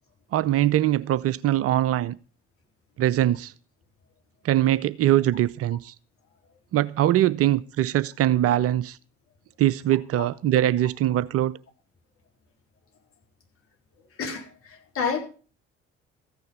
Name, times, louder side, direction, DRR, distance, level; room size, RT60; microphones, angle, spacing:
voice 1, 0.3-2.2 3.0-3.5 4.4-5.9 6.7-9.0 9.6-11.5, right 13 dB, 45° right, 0.6 m, -22 dB
voice 2, 14.2-15.2, left 5 dB, 45° left, 3.9 m, -29 dB
14.5 x 9.4 x 5.1 m
figure-of-eight pair, 50°, 32 cm